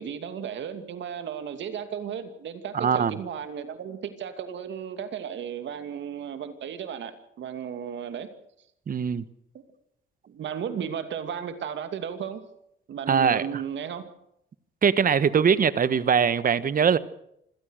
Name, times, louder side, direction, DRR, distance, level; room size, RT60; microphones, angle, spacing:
voice 1, 0.0-7.1 7.4-8.3 10.3-12.4 12.9-14.0, right 8 dB, 65° right, 2.7 m, -34 dB
voice 2, 2.7-3.1 8.9-9.3 13.1-13.6 14.8-17.0, right 7 dB, 45° right, 1.3 m, -22 dB
26.5 x 16.5 x 6.6 m
cardioid pair, 90°, 20 cm